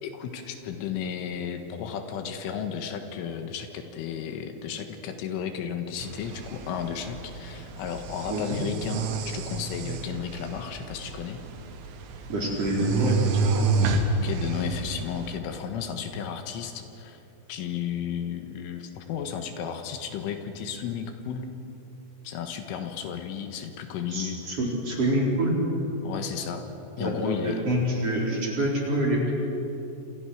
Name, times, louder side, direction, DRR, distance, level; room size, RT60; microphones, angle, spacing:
voice 1, 0.0-11.4 12.8-12.9 14.2-17.2 17.5-21.5 22.3-24.6 26.0-26.6 27.0-27.6, left 8 dB, 80° left, 6 dB, 3.9 m, -33 dB
sound 1, 6.0-15.4, right 4 dB, 85° right, 4.4 m, -30 dB
voice 2, 12.3-13.1 13.5-13.8 24.1-25.5 27.0-29.3, right 1 dB, 30° right, -2 dB, 4.7 m, -26 dB
28.0 x 28.0 x 6.4 m, 3.0 s
omnidirectional pair, 5.8 m